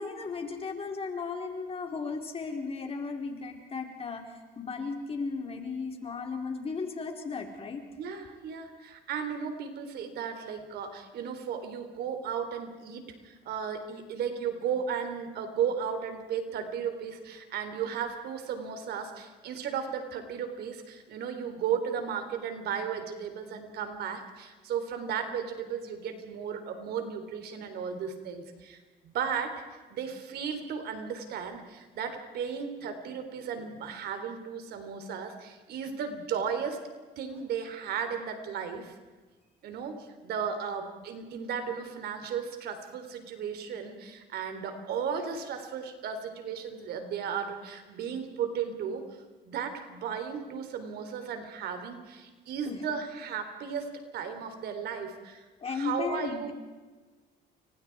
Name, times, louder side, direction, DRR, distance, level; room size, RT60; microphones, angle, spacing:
voice 1, 0.0-7.8 52.6-52.8 55.6-56.5, left 4 dB, 35° left, 3 dB, 4.4 m, -35 dB
voice 2, 8.0-36.8 37.2-39.0 39.6-49.1 49.5-56.5, right 7 dB, 70° right, 7 dB, 3.8 m, -35 dB
29.5 x 24.5 x 4.8 m, 1.3 s
cardioid pair, 110°, 17 cm